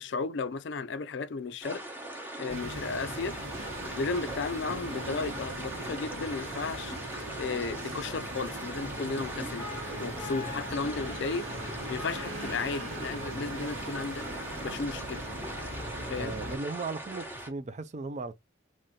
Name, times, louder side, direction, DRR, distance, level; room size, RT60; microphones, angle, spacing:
voice 1, 0.0-1.8 2.4-3.4 3.9-7.0 7.4-9.7 10.0-11.5 11.9-14.2 14.6-15.2 16.1-16.4, left 4 dB, 60° left, 0.4 m, -34 dB
sound 1, 1.6-17.5, right 1 dB, 10° right, 0.9 m, -41 dB
sound 2, 2.5-16.6, right 1 dB, 85° right, 1.8 m, -40 dB
Wind instrument woodwind instrument, 9.6-13.3, left 3 dB, 20° left, 1.0 m, -44 dB
voice 2, 16.2-18.3, right 3 dB, 35° right, 0.4 m, -36 dB
3.2 x 2.8 x 3.7 m
head